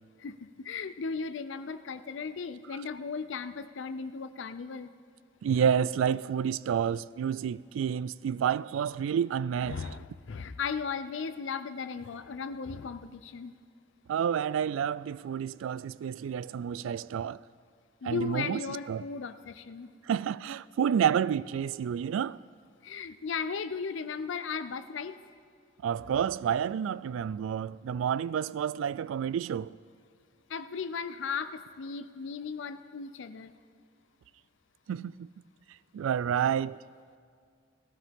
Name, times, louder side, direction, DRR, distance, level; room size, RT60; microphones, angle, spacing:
voice 1, 0.2-4.9 9.6-13.5 18.0-19.9 22.8-25.2 30.5-33.5, left 5 dB, 70° left, 0.5 m, -36 dB
voice 2, 5.4-9.8 14.1-17.4 18.0-19.0 20.0-22.4 25.8-29.7 34.9-35.3 35.9-36.8, right 8 dB, 90° right, 0.3 m, -29 dB
18.0 x 15.0 x 3.6 m
head